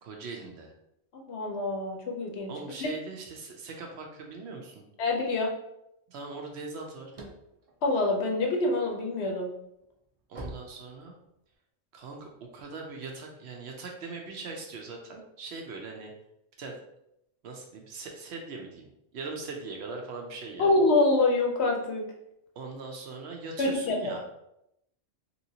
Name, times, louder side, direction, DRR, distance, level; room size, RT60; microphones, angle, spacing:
voice 1, 0.0-0.7 2.5-4.8 6.1-7.1 10.3-11.1 11.9-16.1 16.6-16.8 17.4-20.7 22.6-24.2, right 3 dB, 65° right, 1 dB, 0.8 m, -40 dB
voice 2, 1.3-2.5 2.8-2.9 5.0-5.5 7.8-9.5 20.6-22.0 23.6-24.2, left 2 dB, 65° left, 1 dB, 0.8 m, -26 dB
sound 1, 7.1-8.8 9.3-11.5, right 1 dB, 50° right, 0.4 m, -44 dB
3.0 x 2.9 x 2.7 m, 0.81 s
omnidirectional pair, 1.3 m